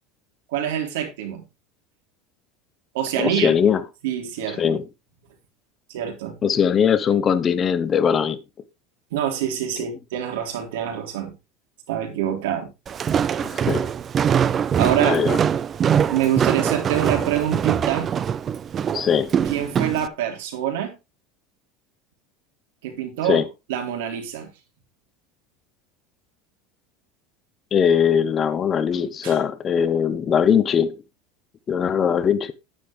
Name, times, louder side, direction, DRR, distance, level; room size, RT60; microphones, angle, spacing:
voice 1, 0.5-1.4 2.9-3.5 4.0-4.8 5.9-6.4 9.1-11.3 11.9-12.7 14.8-15.2 16.1-18.1 19.5-21.0 22.8-23.4 23.7-24.5 29.2-29.4, right 10 dB, 90° right, 3.7 m, -25 dB
voice 2, 3.2-3.8 4.6-4.8 6.4-8.4 13.5-13.9 15.0-15.4 18.9-19.3 23.3-23.5 27.7-30.9 31.7-32.5, left 7 dB, 25° left, 1.0 m, -20 dB
Walk footsteps, 12.9-20.1, right 8 dB, 25° right, 0.5 m, -23 dB
10.0 x 10.0 x 3.3 m
supercardioid pair, 155°, 0 cm